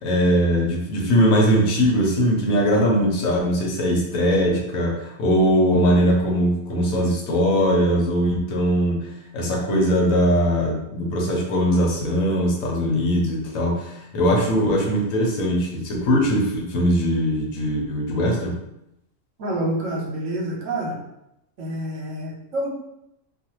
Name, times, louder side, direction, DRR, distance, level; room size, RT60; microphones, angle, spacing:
voice 1, 0.0-9.1 9.3-18.5, equal, 90° left, -1 dB, 1.1 m, -20 dB
voice 2, 19.4-21.0 21.6-22.7, right 1 dB, 75° right, -2 dB, 1.1 m, -27 dB
2.4 x 2.4 x 2.9 m, 0.83 s
omnidirectional pair, 1.4 m